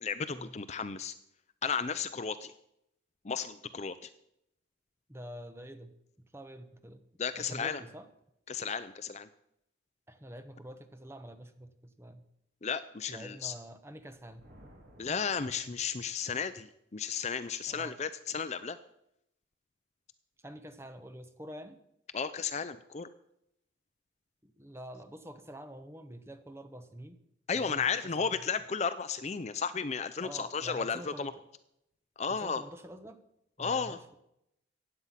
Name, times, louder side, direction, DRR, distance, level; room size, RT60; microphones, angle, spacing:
voice 1, 0.0-1.1 1.6-2.5 3.2-4.1 7.2-7.8 8.5-9.3 12.6-13.5 15.0-18.8 22.1-23.1 27.5-31.3 32.2-32.6 33.6-34.0, left 6 dB, 35° left, 12 dB, 0.5 m, -34 dB
voice 2, 5.1-5.9 6.2-7.0 7.4-8.1 10.1-12.2 13.1-14.4 17.7-18.0 20.4-21.8 24.4-27.2 27.5-28.4 30.2-31.3 32.3-33.2 33.6-34.1, equal, 15° right, 9 dB, 1.0 m, -47 dB
Thunder, 14.1-16.3, equal, 55° right, 5.1 m, -59 dB
15.5 x 9.7 x 5.7 m, 0.79 s
head